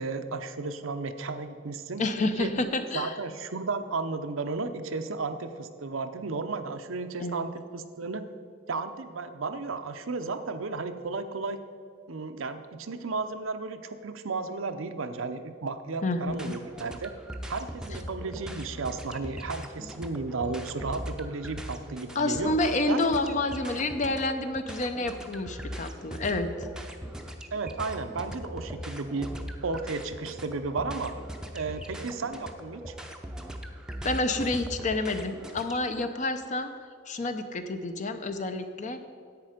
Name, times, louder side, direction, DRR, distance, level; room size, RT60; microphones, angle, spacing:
voice 1, 0.0-2.0 2.4-2.5 2.9-8.2 8.7-11.6 12.1-17.1 17.5-22.5 22.9-23.0 27.5-29.3 29.6-31.1 31.5-32.9, right 3 dB, 85° right, 9 dB, 0.7 m, -33 dB
voice 2, 2.0-3.2 7.2-7.4 16.0-16.5 22.1-26.7 34.0-36.7 37.1-39.1, left 2 dB, 35° left, 8 dB, 0.5 m, -29 dB
sound 1, 16.3-35.9, equal, 5° right, 0.6 m, -40 dB
10.5 x 8.3 x 5.0 m, 2.3 s
head